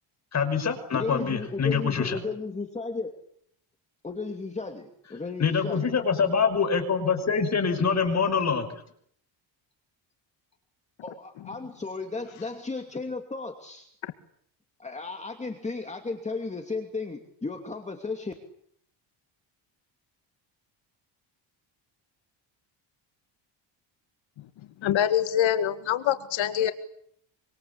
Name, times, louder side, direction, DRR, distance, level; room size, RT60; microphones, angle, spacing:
voice 1, 0.3-2.2 5.4-8.8, left 5 dB, 35° left, 7 dB, 5.7 m, -25 dB
voice 2, 0.9-3.1 4.0-5.9 11.0-13.9 14.8-18.3, left 3 dB, 15° left, 5 dB, 2.7 m, -34 dB
voice 3, 24.8-26.7, left 10 dB, 75° left, 9 dB, 2.1 m, -24 dB
26.0 x 26.0 x 8.6 m, 0.67 s
cardioid pair, 160°, 46 cm